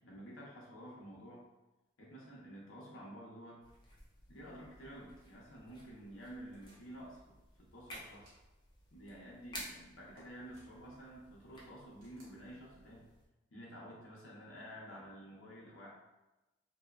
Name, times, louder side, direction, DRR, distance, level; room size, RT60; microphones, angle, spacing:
voice 1, 0.0-1.4 2.0-3.6 4.3-8.3 8.9-13.1 13.5-15.9, equal, 80° left, -5 dB, 0.7 m, -51 dB
sound 1, 3.6-13.3, equal, 25° left, 0.5 m, -55 dB
sound 2, 6.5-7.1 7.9-8.4 10.1-10.7 12.0-12.4, equal, 80° right, 0.8 m, -61 dB
2.7 x 2.1 x 2.3 m, 1.0 s
head